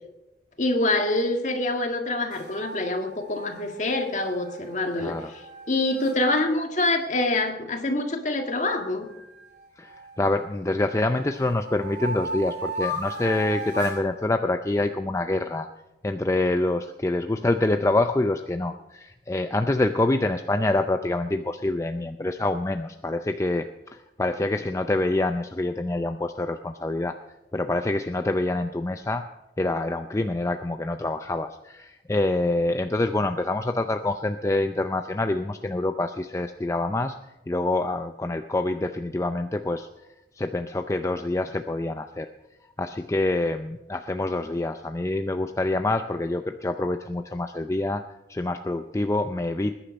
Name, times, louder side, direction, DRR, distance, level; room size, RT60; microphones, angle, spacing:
voice 1, 0.6-9.1, left 2 dB, 45° left, 4 dB, 1.7 m, -26 dB
sound 1, 2.3-6.2 9.1-10.3 10.8-14.0, equal, 45° right, 6.6 m, -36 dB
voice 2, 5.0-5.3 9.8-15.7 16.0-27.2 27.5-29.2 29.6-37.2 37.5-39.9 40.4-42.3 42.8-48.0 48.3-49.8, left 2 dB, 15° left, 7 dB, 0.4 m, -26 dB
20.5 x 10.0 x 5.3 m, 0.98 s
head